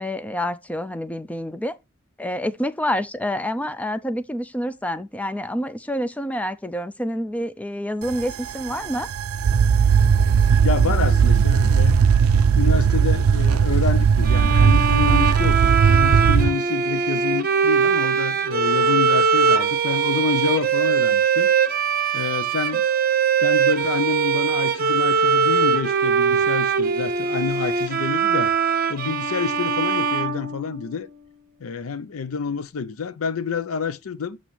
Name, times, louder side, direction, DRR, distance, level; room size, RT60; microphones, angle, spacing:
voice 1, 0.0-1.7 2.2-9.1, equal, 5° left, 0.5 m, -27 dB
sound 1, 8.0-16.5, right 6 dB, 80° right, 0.4 m, -18 dB
voice 2, 10.6-12.0 12.5-21.5 22.1-22.8 23.4-28.5 28.9-31.1 31.6-34.4, left 5 dB, 75° left, 0.5 m, -28 dB
sound 2, 14.2-31.1, right 6 dB, 45° right, 0.7 m, -21 dB
8.0 x 3.0 x 5.8 m
head